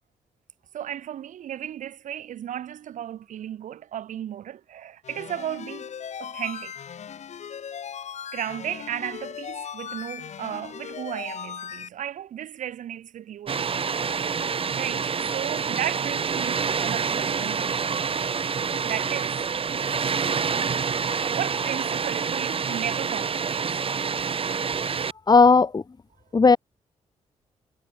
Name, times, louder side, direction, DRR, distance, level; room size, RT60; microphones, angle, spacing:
voice 1, 0.7-5.9 6.2-6.8 8.3-14.2 14.7-17.9 18.8-19.5 21.3-23.7, right 10 dB, 75° right, 1.9 m, -34 dB
sound 1, 5.0-11.9, left 8 dB, 60° left, 1.7 m, -38 dB
Water, 13.5-25.1, right 6 dB, 45° right, 1.4 m, -27 dB
voice 2, 25.3-25.8 26.3-26.6, left 4 dB, 30° left, 1.2 m, -15 dB
supercardioid pair, 60°, 13 cm